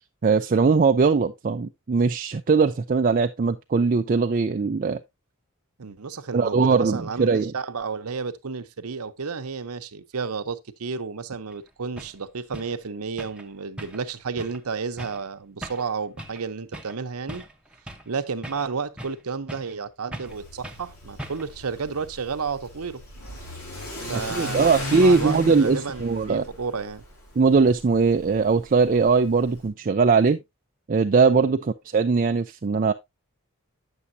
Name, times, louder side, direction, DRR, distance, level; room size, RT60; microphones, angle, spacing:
voice 1, 0.2-5.0 6.3-7.5 24.3-26.4 27.4-30.4 30.9-32.9, right 4 dB, 40° right, 0.4 m, -20 dB
voice 2, 5.8-17.4 18.1-23.0 24.1-27.0 31.3-31.5, right 5 dB, 85° right, 0.8 m, -32 dB
sound 1, 11.5-11.6 12.0-12.2 12.5-12.8 13.2-13.5 13.8-14.1 14.4-14.6 15.0-15.2 15.6-15.9 16.2-16.4 16.7-17.0 17.3-18.1 18.4-19.2 19.5-19.8 20.1-20.4 20.6-20.9 21.2-21.6, right 1 dB, 5° right, 0.9 m, -39 dB
Car / Accelerating revving vroom, 20.3-29.7, left 1 dB, 85° left, 4.0 m, -37 dB
9.8 x 7.0 x 2.7 m
head